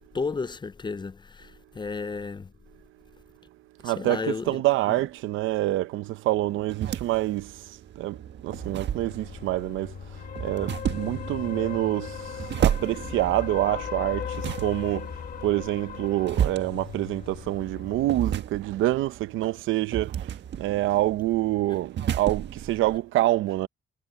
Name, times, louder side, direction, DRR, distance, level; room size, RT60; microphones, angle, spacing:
voice 1, 0.1-2.5 3.8-4.6 4.9-5.0, left 4 dB, 20° left, 0.6 m, -33 dB
voice 2, 3.8-7.5 8.0-8.2 8.4-9.9 10.4-12.2 12.6-15.1 15.4-20.1 20.6-23.7, right 16 dB, 90° right, 0.8 m, -26 dB
sound 1, 6.3-23.0, right 9 dB, 60° right, 1.5 m, -33 dB
sound 2, 8.5-18.1, left 8 dB, 45° left, 1.4 m, -38 dB
cardioid pair, 90°, 20 cm